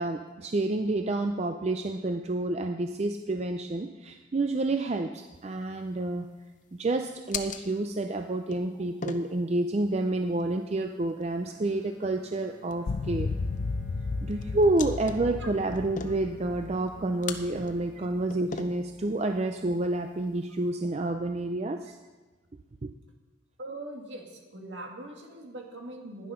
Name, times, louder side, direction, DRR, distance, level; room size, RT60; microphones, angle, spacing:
voice 1, 0.0-6.3 6.7-13.3 14.2-22.0 22.8-22.9, right 2 dB, 35° right, 6 dB, 0.4 m, -29 dB
sound 1, 5.4-20.7, left 5 dB, 40° left, 0.7 m, -44 dB
Bowed string instrument, 11.4-19.7, right 2 dB, 5° left, 3.0 m, -55 dB
sound 2, 12.9-18.2, left 3 dB, 75° left, 0.5 m, -34 dB
voice 2, 23.6-26.3, right 2 dB, 65° right, 1 dB, 2.2 m, -41 dB
11.0 x 10.5 x 5.7 m, 1.2 s
head